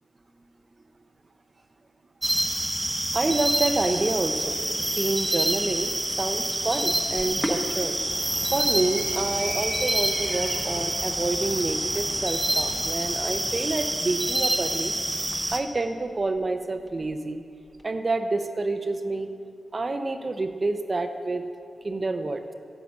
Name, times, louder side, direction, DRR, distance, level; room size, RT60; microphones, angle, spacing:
sound 1, 2.2-15.6, right 1 dB, 15° right, 1.0 m, -27 dB
voice 1, 3.1-4.6 5.0-8.0 8.5-14.9 15.5-17.4 17.8-19.3 19.7-21.4 21.8-22.5, right 3 dB, 45° right, 7 dB, 0.7 m, -28 dB
Sink (filling or washing), 7.0-17.8, equal, 10° left, 1.3 m, -41 dB
Animal, 7.9-13.8, equal, 25° left, 3.1 m, -39 dB
9.4 x 8.3 x 7.0 m, 2.4 s
cardioid pair, 55°, 0 cm